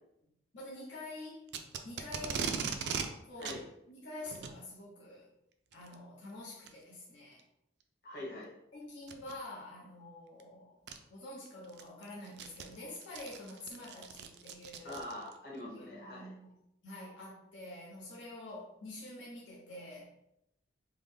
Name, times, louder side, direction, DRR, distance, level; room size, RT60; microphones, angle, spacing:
voice 1, 0.5-1.5 1.8-2.7 3.2-3.6 3.9-5.3 5.7-7.4 8.7-10.8 11.1-15.0 15.6-16.5 16.8-20.1, left 1 dB, 85° left, -5 dB, 0.8 m, -47 dB
Packing tape duct tape, 1.5-3.1 3.4-3.6 4.3-4.6 5.7-5.9 6.6-6.7 7.4-7.5 9.0-9.3 10.4-10.5 10.9-11.0 11.5-15.4, right 6 dB, 65° right, 0.3 m, -39 dB
voice 2, 8.0-8.5 14.8-16.3, left 1 dB, 55° left, -5 dB, 1.1 m, -43 dB
3.6 x 2.1 x 3.3 m, 0.82 s
head